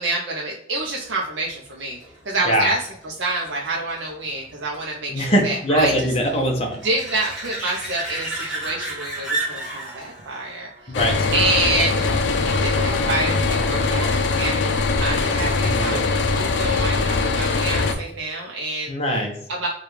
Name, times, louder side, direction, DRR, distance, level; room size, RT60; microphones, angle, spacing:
voice 1, 0.0-2.0 2.2-6.1 6.8-10.9 11.3-12.1 12.5-14.6 15.0-16.0 16.3-18.9 19.5-19.7, right 2 dB, 75° right, -2 dB, 0.6 m, -27 dB
sound 1, 1.2-12.4 18.1-18.2, right 2 dB, 5° right, 1.6 m, -34 dB
voice 2, 5.1-6.8 10.9-11.1 15.6-16.0 18.9-19.3, equal, 35° left, 1 dB, 0.8 m, -21 dB
sound 2, 10.9-17.9, left 3 dB, 70° left, 0.5 m, -21 dB
4.8 x 2.3 x 3.2 m, 0.70 s
head